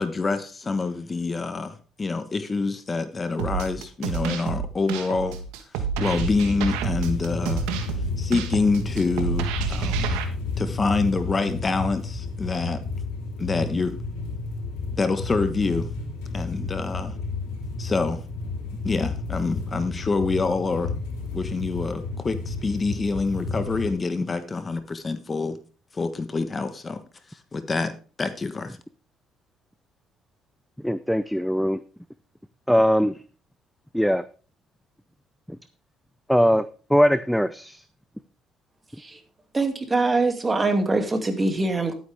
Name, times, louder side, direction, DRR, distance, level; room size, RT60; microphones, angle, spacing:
voice 1, 0.0-5.4 6.0-7.7 8.2-10.2 10.6-12.8 13.4-14.0 14.9-15.9 16.3-17.2 17.8-18.2 18.8-20.9 21.3-25.6 25.9-27.0 27.3-28.8, left 3 dB, 30° left, 10 dB, 1.2 m, -26 dB
sound 1, 3.4-10.2, right 7 dB, 90° right, 1.4 m, -29 dB
sound 2, 6.0-23.9, left 3 dB, 85° left, 3.5 m, -32 dB
voice 2, 30.8-31.8 32.7-33.2 33.9-34.2 35.5-35.6 36.3-37.8, equal, ahead, 14 dB, 0.6 m, -21 dB
voice 3, 39.5-41.9, right 3 dB, 25° right, 6 dB, 2.4 m, -23 dB
11.5 x 9.3 x 3.5 m, 0.38 s
supercardioid pair, 80°, 0 cm